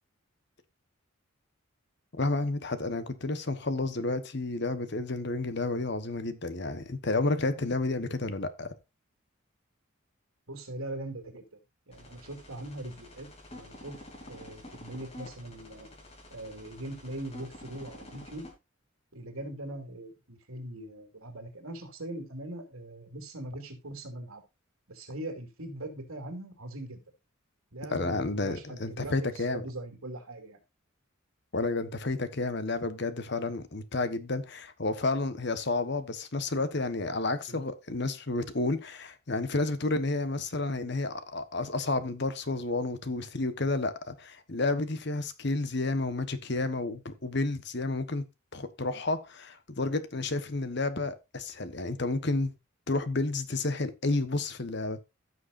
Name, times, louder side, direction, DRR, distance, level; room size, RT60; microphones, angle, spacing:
voice 1, 2.2-8.7 27.9-29.6 31.5-48.2 48.5-52.5 52.9-55.0, left 2 dB, 50° left, 1.2 m, -31 dB
voice 2, 10.5-11.4 11.9-14.0 14.3-15.9 16.3-18.5 19.1-24.4 24.9-27.0 27.7-30.6 37.5-37.6, right 1 dB, 80° right, 2.8 m, -41 dB
sound 1, 11.9-18.5, left 1 dB, 30° left, 3.2 m, -49 dB
15.5 x 6.4 x 2.6 m
head